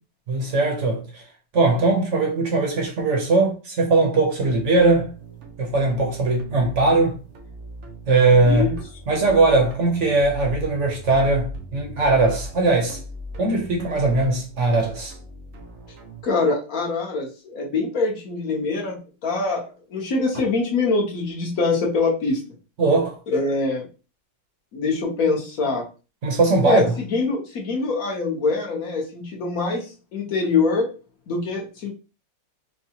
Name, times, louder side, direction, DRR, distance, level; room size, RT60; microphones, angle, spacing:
voice 1, 0.3-1.2 1.5-5.1 5.6-7.2 8.1-8.7 9.1-13.0 13.4-15.1 22.8-23.2 26.2-27.0, right 3 dB, 50° right, 0.9 m, -20 dB
sound 1, 4.4-16.2, equal, 85° right, 0.6 m, -39 dB
voice 2, 8.4-8.8 16.2-22.4 23.3-23.9 24.7-25.8 26.6-30.9 31.3-31.9, left 3 dB, 55° left, 1.3 m, -24 dB
4.5 x 2.3 x 2.9 m
omnidirectional pair, 2.1 m